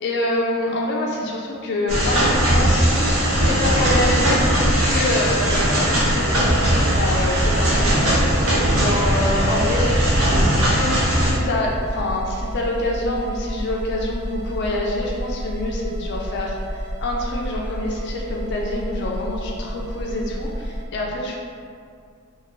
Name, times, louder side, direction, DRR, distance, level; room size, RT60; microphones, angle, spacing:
voice 1, 0.0-2.9 3.4-4.4 4.8-9.9 10.7-21.4, left 1 dB, 55° left, -1 dB, 0.4 m, -26 dB
sound 1, 1.9-11.3, equal, 85° right, 0.8 m, -19 dB
sound 2, 6.4-20.9, equal, 35° right, 0.6 m, -30 dB
2.7 x 2.5 x 3.0 m, 2.3 s
head